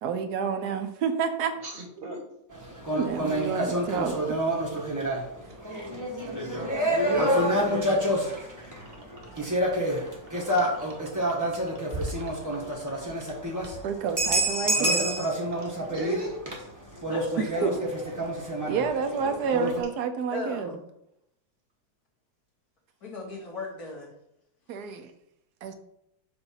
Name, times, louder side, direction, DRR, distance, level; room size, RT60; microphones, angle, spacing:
voice 1, 0.0-1.5 2.9-4.2 13.8-15.2 17.4-17.9 18.7-20.8 24.7-25.1 25.6-25.7, right 6 dB, 65° right, 8 dB, 1.2 m, -29 dB
voice 2, 1.6-2.3 8.8-8.9 10.3-10.7 12.2-12.3 15.9-16.4 19.1-19.5, right 1 dB, 35° right, 1 dB, 1.2 m, -39 dB
sound 1, 2.5-19.8, equal, 15° right, 0.9 m, -28 dB
voice 3, 17.1-17.8 20.3-20.8 23.0-24.1, left 2 dB, 55° left, -3 dB, 2.2 m, -37 dB
7.9 x 2.6 x 5.6 m, 0.79 s
omnidirectional pair, 2.0 m